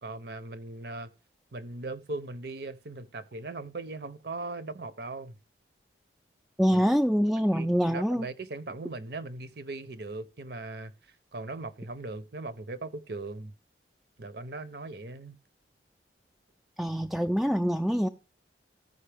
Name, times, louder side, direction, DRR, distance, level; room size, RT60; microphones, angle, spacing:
voice 1, 0.0-1.1 1.5-5.4 6.7-6.8 7.5-10.9 11.3-13.5 14.2-15.4, right 2 dB, 60° right, 0.8 m, -39 dB
voice 2, 6.6-8.3 16.8-18.1, equal, ahead, 0.4 m, -25 dB
15.0 x 5.4 x 3.4 m
head